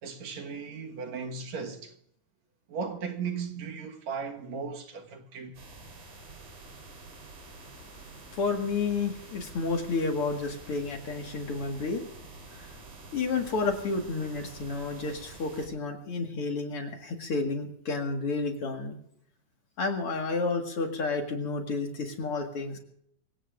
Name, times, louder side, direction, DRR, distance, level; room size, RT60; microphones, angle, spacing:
voice 1, 0.0-1.9 2.7-5.6, right 5 dB, 70° right, 2.7 m, -36 dB
sound 1, 5.5-15.7, right 3 dB, 85° right, 5.6 m, -48 dB
voice 2, 8.3-12.0 12.5-12.7 13.1-19.0 19.8-22.8, left 4 dB, 50° left, 2.5 m, -31 dB
25.5 x 16.5 x 2.5 m
omnidirectional pair, 3.4 m